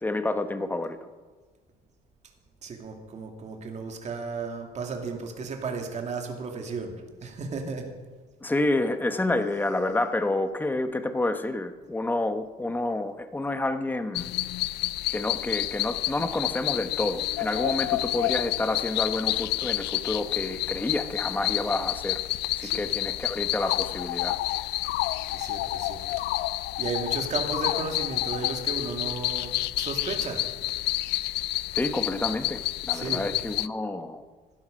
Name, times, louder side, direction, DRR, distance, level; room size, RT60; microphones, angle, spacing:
voice 1, 0.0-1.1 8.4-14.3 15.1-22.2 22.6-24.4 31.8-34.2, left 2 dB, 10° left, 9 dB, 1.1 m, -29 dB
voice 2, 2.6-7.9 22.6-22.9 25.3-26.2 26.5-30.4 30.8-31.3 32.9-33.3, right 4 dB, 40° right, 3 dB, 2.5 m, -35 dB
sound 1, 14.1-33.7, left 17 dB, 80° left, 0.4 m, -29 dB
16.5 x 12.0 x 5.2 m, 1.4 s
cardioid pair, 110°, 17 cm